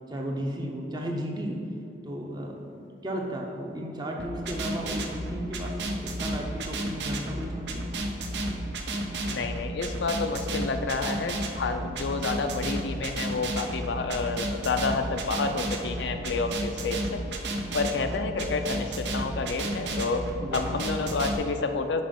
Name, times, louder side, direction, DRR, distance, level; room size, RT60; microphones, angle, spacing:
voice 1, 0.1-1.6 2.0-7.9 20.4-20.6, equal, 25° right, 0 dB, 0.7 m, -34 dB
sound 1, 4.2-21.3, right 1 dB, 75° right, 0.7 m, -32 dB
voice 2, 9.3-17.2 17.7-20.2 20.5-22.0, left 4 dB, 80° left, 7 dB, 0.5 m, -29 dB
5.4 x 4.9 x 5.2 m, 2.5 s
head